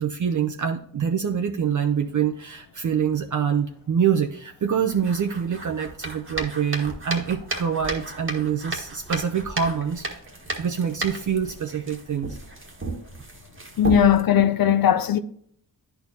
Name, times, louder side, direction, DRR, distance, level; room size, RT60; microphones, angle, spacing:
voice 1, 0.0-10.1 10.6-12.4, right 7 dB, 55° right, 0.5 m, -25 dB
sound 1, 4.9-14.2, right 2 dB, 35° right, 1.3 m, -34 dB
voice 2, 13.8-15.2, left 9 dB, 70° left, 0.5 m, -18 dB
10.0 x 4.4 x 2.7 m
cardioid pair, 45°, 37 cm